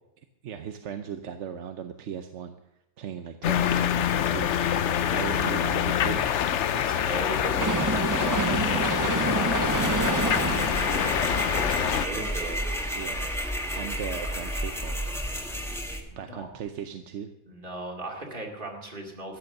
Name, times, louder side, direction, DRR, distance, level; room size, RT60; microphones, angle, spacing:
voice 1, 0.4-2.6 3.0-4.5 5.1-6.3 7.6-7.7 8.2-8.9 9.6-9.9 11.3-11.5 12.9-13.3 13.7-15.1 16.2-17.3, right 8 dB, 85° right, 8 dB, 1.1 m, -37 dB
sound 1, 3.4-12.1, left 9 dB, 85° left, 1.0 m, -26 dB
voice 2, 4.5-5.6 6.7-12.7 16.1-16.5 17.5-19.4, right 2 dB, 45° right, 0 dB, 2.6 m, -37 dB
sound 2, 7.6-13.6 14.0-14.1, right 3 dB, 25° right, 0.4 m, -30 dB
sound 3, 9.7-16.0, equal, ahead, 1.6 m, -31 dB
14.0 x 9.6 x 6.7 m, 0.88 s
omnidirectional pair, 1.2 m